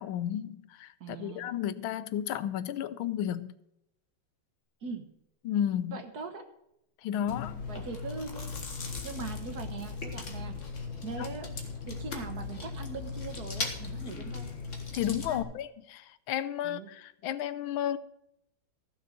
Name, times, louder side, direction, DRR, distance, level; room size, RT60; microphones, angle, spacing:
voice 1, 0.0-3.5 5.4-6.0 7.0-7.6 11.2-11.3 14.9-18.0, left 10 dB, 90° left, 1.5 m, -33 dB
voice 2, 1.0-1.5 4.8-5.0 5.9-6.4 7.7-8.5 9.0-10.5 11.0-11.5 11.9-14.5 15.3-15.4 16.6-16.9, right 4 dB, 55° right, 1.7 m, -40 dB
Chewing mastication, 7.3-15.4, left 4 dB, 40° left, 1.8 m, -38 dB
15.0 x 6.6 x 6.3 m
omnidirectional pair, 2.2 m